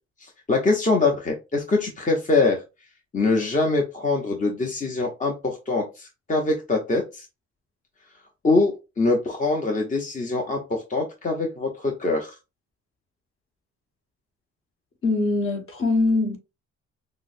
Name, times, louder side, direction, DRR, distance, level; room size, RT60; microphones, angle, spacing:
voice 1, 0.2-2.6 3.1-7.3 8.4-12.3, left 3 dB, 25° left, 0.8 m, -23 dB
voice 2, 15.0-16.4, left 3 dB, 45° left, 1.4 m, -22 dB
5.9 x 2.1 x 2.6 m
cardioid pair, 90°, 30 cm